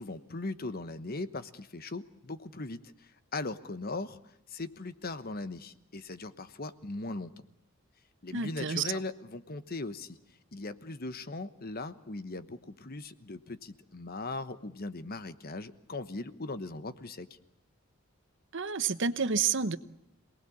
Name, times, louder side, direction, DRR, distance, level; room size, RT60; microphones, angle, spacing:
voice 1, 0.0-4.2 4.5-7.3 8.2-10.2 10.5-17.3, left 2 dB, 45° left, 12 dB, 1.1 m, -39 dB
voice 2, 8.3-8.8 18.5-19.8, right 5 dB, 60° right, 13 dB, 1.0 m, -29 dB
27.5 x 19.5 x 8.6 m, 0.83 s
head